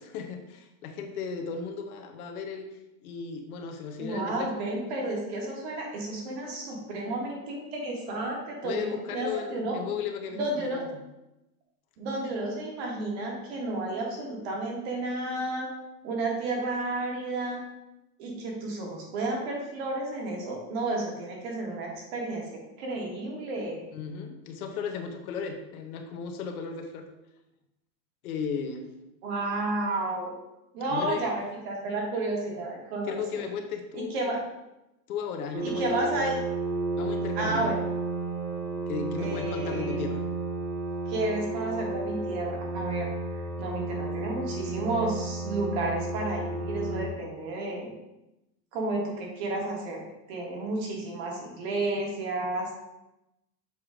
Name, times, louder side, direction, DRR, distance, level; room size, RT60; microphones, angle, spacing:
voice 1, 0.0-2.7 3.0-4.5 8.6-10.9 23.9-27.1 28.2-28.8 30.9-31.2 33.1-34.2 35.1-36.2 37.0-37.8 38.9-40.2, left 6 dB, 70° left, 4 dB, 1.0 m, -35 dB
voice 2, 4.0-9.8 10.3-10.8 12.0-15.7 16.0-17.6 18.2-22.4 22.8-23.9 29.2-30.3 30.7-33.4 33.9-34.4 35.6-36.4 37.3-37.8 39.2-40.0 41.1-43.1 43.6-47.9 48.7-50.0 50.3-52.8, right 2 dB, 40° right, -1 dB, 1.5 m, -32 dB
sound 1, 35.5-47.1, right 2 dB, 25° right, 0.4 m, -32 dB
7.0 x 3.1 x 5.0 m, 0.93 s
supercardioid pair, 180°, 46 cm